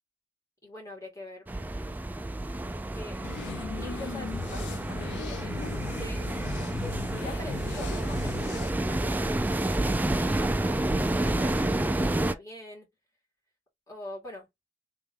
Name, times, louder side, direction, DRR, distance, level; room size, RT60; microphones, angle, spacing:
voice 1, 0.6-1.5 2.9-3.3 3.8-6.3 6.6-6.9 7.2-10.5 11.0-12.9 13.9-14.5, left 1 dB, 20° left, 2.1 m, -44 dB
sound 1, 1.5-12.3, right 1 dB, 10° right, 0.3 m, -29 dB
sound 2, 3.2-8.7, left 6 dB, 75° left, 0.3 m, -39 dB
3.4 x 2.9 x 3.4 m
head